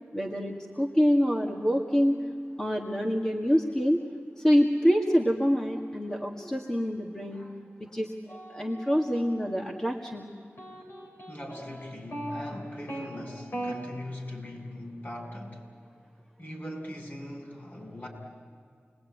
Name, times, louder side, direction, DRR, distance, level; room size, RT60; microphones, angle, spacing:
voice 1, 0.1-2.2 2.6-4.0 4.4-7.5 7.8-8.1 8.5-10.3, equal, 15° left, -1 dB, 1.9 m, -26 dB
voice 2, 1.9-2.4 6.1-6.5 7.1-8.0 11.3-15.6 16.4-18.1, left 1 dB, 45° left, -1 dB, 7.0 m, -41 dB
sound 1, 8.3-9.8 10.6-13.1 13.5-13.7, right 1 dB, 70° left, 5.9 m, -39 dB
28.0 x 21.0 x 9.3 m, 2.3 s
wide cardioid pair, 65°, 4 cm